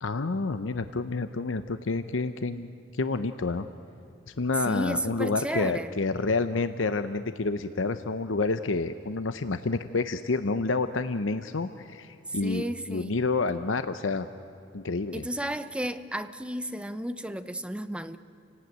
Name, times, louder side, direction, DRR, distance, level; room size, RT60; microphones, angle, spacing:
voice 1, 0.0-3.7 4.3-14.3 14.7-15.2, left 3 dB, 90° left, 0.8 m, -29 dB
voice 2, 4.7-5.9 12.4-13.2 15.1-18.2, right 1 dB, 5° right, 0.8 m, -33 dB
29.5 x 18.0 x 9.4 m
head